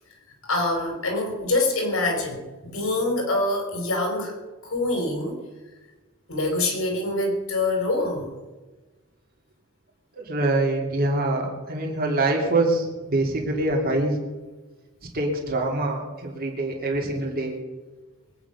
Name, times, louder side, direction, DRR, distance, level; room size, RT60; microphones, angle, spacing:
voice 1, 0.4-4.3 4.6-5.4 6.3-8.3, left 2 dB, 75° left, 2 dB, 4.5 m, -25 dB
voice 2, 10.2-14.2 15.1-17.6, right 2 dB, 45° right, 0 dB, 3.0 m, -24 dB
22.5 x 9.1 x 5.9 m, 1.2 s
head